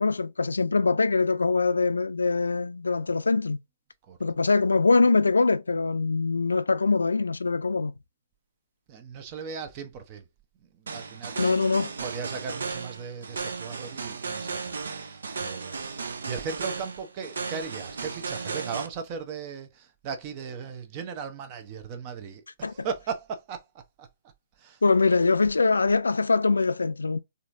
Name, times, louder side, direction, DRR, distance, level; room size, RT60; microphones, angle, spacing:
voice 1, 0.0-3.6 4.2-7.9 11.4-11.9 22.6-22.7 24.8-27.2, left 4 dB, 85° left, 0.4 m, -23 dB
voice 2, 8.9-10.3 10.6-24.1 24.6-24.8, right 6 dB, 35° right, 0.8 m, -37 dB
sound 1, 10.9-18.9, right 4 dB, 75° right, 0.6 m, -35 dB
4.2 x 2.6 x 2.6 m
figure-of-eight pair, 130°, 0 cm